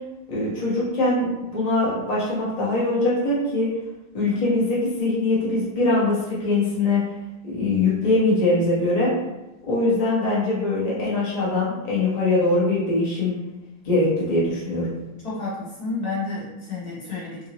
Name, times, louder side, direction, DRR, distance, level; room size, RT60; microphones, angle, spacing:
voice 1, 0.3-1.3 1.5-3.7 4.1-7.1 7.4-9.1 9.6-13.3 13.8-15.0, left 2 dB, 30° left, -7 dB, 0.7 m, -22 dB
voice 2, 15.2-17.5, left 3 dB, 55° left, -8 dB, 1.1 m, -30 dB
3.8 x 2.7 x 2.9 m, 0.99 s
omnidirectional pair, 2.3 m